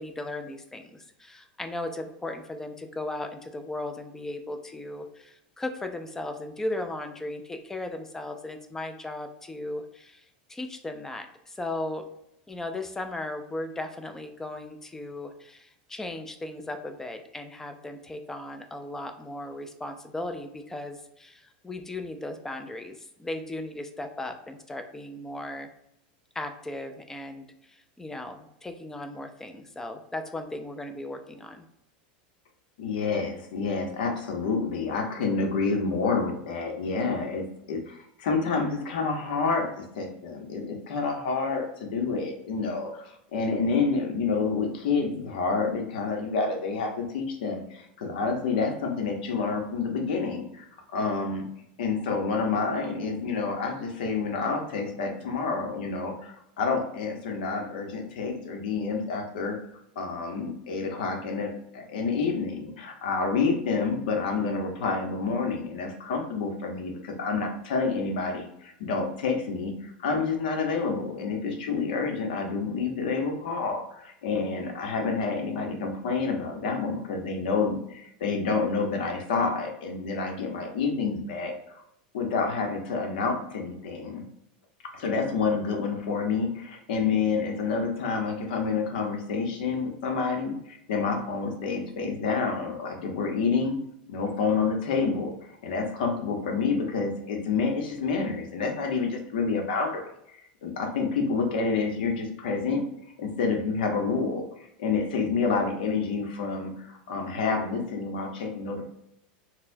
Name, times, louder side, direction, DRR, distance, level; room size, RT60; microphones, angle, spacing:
voice 1, 0.0-12.1 12.5-25.7 26.3-31.7, left 2 dB, 10° left, 6 dB, 0.4 m, -37 dB
voice 2, 32.8-50.6 50.9-51.4 51.8-59.6 60.0-81.5 82.1-84.2 84.9-93.8 94.1-95.3 95.6-102.8 103.2-104.4 104.8-108.9, left 4 dB, 80° left, 3 dB, 0.8 m, -28 dB
4.1 x 2.2 x 2.6 m, 0.78 s
supercardioid pair, 125°, 5 cm